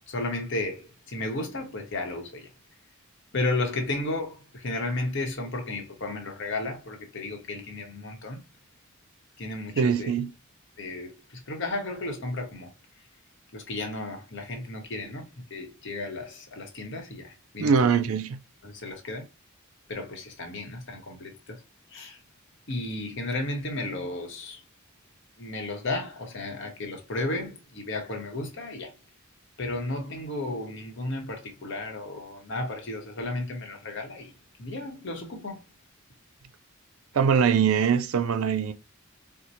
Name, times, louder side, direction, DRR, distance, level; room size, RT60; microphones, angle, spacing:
voice 1, 0.1-2.5 3.3-8.4 9.4-10.1 10.8-12.7 13.5-18.0 18.6-19.2 19.9-21.6 21.9-22.2 22.7-24.6 25.4-28.9 29.6-34.3 34.6-35.6, left 2 dB, 60° left, 1.0 m, -33 dB
voice 2, 9.8-10.3 17.6-18.4 37.1-38.7, right 6 dB, 75° right, 0.4 m, -22 dB
4.5 x 2.1 x 2.7 m
head